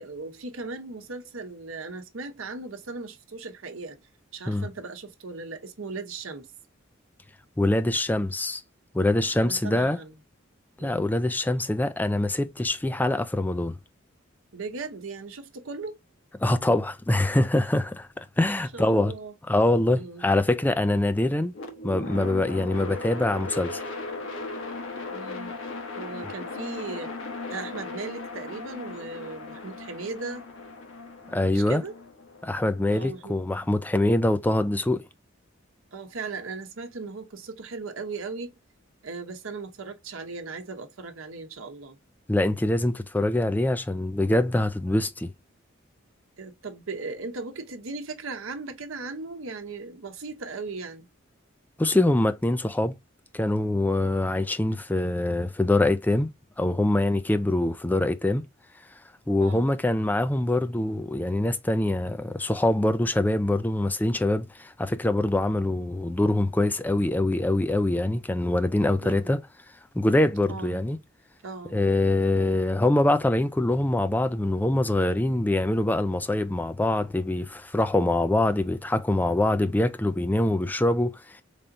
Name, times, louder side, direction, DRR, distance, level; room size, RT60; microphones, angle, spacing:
voice 1, 0.0-4.0 4.3-6.5 9.4-10.2 10.8-11.1 14.5-16.0 18.5-19.3 19.9-20.3 25.1-25.5 26.0-27.2 27.5-30.5 31.5-32.0 32.9-33.4 35.9-38.5 39.0-42.0 46.4-51.1 59.3-59.7 69.0-69.3 70.5-70.8 71.4-71.8, right 4 dB, 85° right, 0.9 m, -37 dB
voice 2, 7.6-8.6 8.9-10.0 10.8-13.8 16.4-19.1 19.5-21.5 21.8-23.8 31.3-31.8 32.4-35.0 42.3-45.3 51.8-53.0 53.3-56.3 56.6-58.4 59.3-69.4 69.9-71.0 71.7-81.4, left 1 dB, 10° left, 0.3 m, -24 dB
sound 1, 21.5-33.7, left 3 dB, 75° left, 1.1 m, -37 dB
4.0 x 3.5 x 2.5 m
head